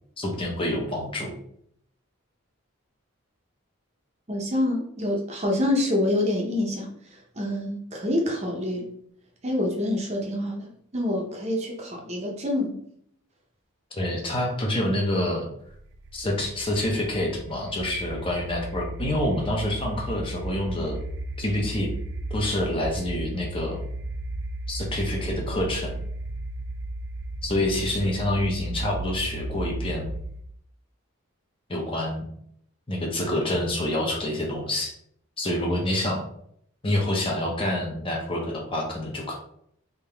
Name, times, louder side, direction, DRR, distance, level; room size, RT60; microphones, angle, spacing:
voice 1, 0.2-1.3 13.9-15.5 16.1-21.0 21.4-21.9 22.3-23.8 24.7-25.9 27.4-30.1 31.7-32.2 32.9-34.9 35.4-36.2 36.8-39.4, left 1 dB, 25° left, -1 dB, 0.7 m, -27 dB
voice 2, 4.3-6.9 7.4-8.9 9.4-12.7, left 1 dB, 30° right, 0 dB, 0.7 m, -26 dB
sound 1, 15.7-30.5, right 1 dB, 55° right, 0.3 m, -35 dB
3.6 x 2.8 x 3.4 m, 0.67 s
head